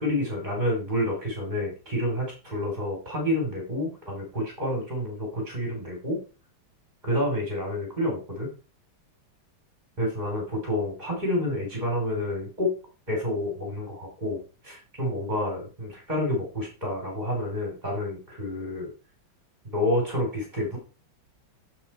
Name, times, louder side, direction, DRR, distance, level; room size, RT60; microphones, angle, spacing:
voice 1, 0.0-6.2 7.0-8.5 10.0-12.7 13.1-18.9 19.6-20.8, left 1 dB, 20° right, -1 dB, 3.3 m, -29 dB
14.5 x 5.2 x 4.3 m, 0.34 s
omnidirectional pair, 2.2 m